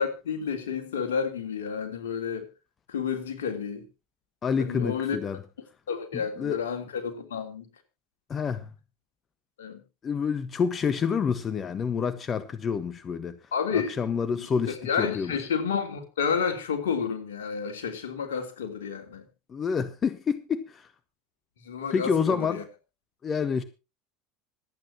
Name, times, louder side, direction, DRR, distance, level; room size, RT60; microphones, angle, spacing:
voice 1, 0.0-2.5 2.9-3.9 4.6-5.2 5.9-7.7 9.6-9.8 13.5-13.9 14.3-14.5 14.8-19.3 21.6-22.6, left 6 dB, 75° left, 3.3 m, -30 dB
voice 2, 4.4-5.4 6.4-6.6 8.3-8.7 10.0-13.4 13.7-15.3 19.5-20.9 21.9-22.6 23.2-23.6, left 6 dB, 35° left, 1.3 m, -28 dB
26.0 x 9.1 x 2.9 m
hypercardioid pair, 75°, 0 cm